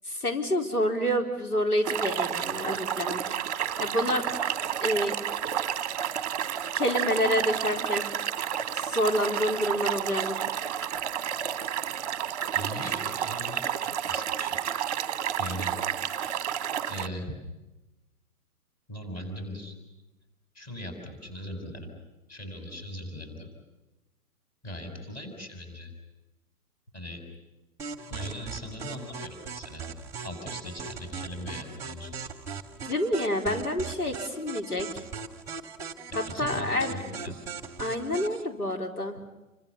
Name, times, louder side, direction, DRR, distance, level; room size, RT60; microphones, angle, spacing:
voice 1, 0.0-3.2 3.8-4.2 4.8-5.1 6.7-8.0 8.7-10.4 32.9-35.0 36.1-37.0 37.8-39.2, equal, 75° left, 1 dB, 4.5 m, -28 dB
sound 1, 1.8-17.1, right 9 dB, 25° right, 1.2 m, -30 dB
voice 2, 12.5-14.6 15.4-15.7 16.9-17.3 18.9-19.7 20.5-21.9 22.3-23.5 24.6-25.9 26.9-27.2 28.1-29.8 30.2-32.1 32.5-32.6 36.1-37.3, equal, 20° left, 5 dB, 6.7 m, -39 dB
sound 2, 27.8-38.4, right 5 dB, 5° right, 1.6 m, -39 dB
29.5 x 25.0 x 7.3 m, 1.1 s
figure-of-eight pair, 130°, 45 cm